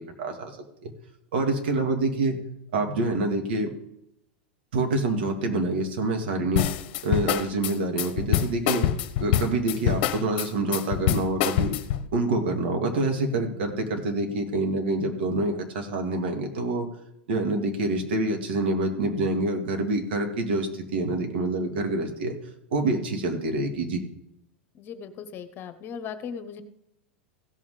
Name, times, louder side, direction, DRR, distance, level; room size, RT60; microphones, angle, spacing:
voice 1, 0.2-0.6 0.8-0.9 1.3-2.4 2.7-3.7 4.7-6.7 7.0-8.9 9.2-11.8 12.1-16.9 17.3-22.4 22.7-24.0, right 2 dB, 70° right, 4 dB, 2.2 m, -26 dB
sound 1, 6.6-12.1, left 11 dB, 55° left, 0.9 m, -25 dB
voice 2, 24.7-26.6, left 7 dB, 35° left, 10 dB, 1.1 m, -38 dB
16.0 x 5.6 x 5.0 m, 0.79 s
hypercardioid pair, 95°, 6 cm